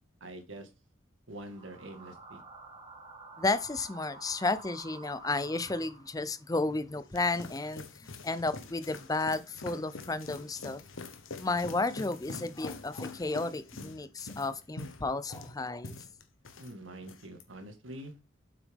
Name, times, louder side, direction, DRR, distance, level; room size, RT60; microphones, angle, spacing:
voice 1, 0.2-0.7 1.3-2.4 16.6-18.1, right 1 dB, 80° right, 1.8 m, -45 dB
sound 1, 1.4-6.5, right 3 dB, 20° right, 1.9 m, -50 dB
voice 2, 3.4-10.8 11.4-16.0, left 3 dB, 20° left, 0.5 m, -32 dB
sound 2, 6.9-16.7 17.0-17.4, left 3 dB, 85° left, 1.2 m, -45 dB
7.9 x 6.1 x 3.6 m
head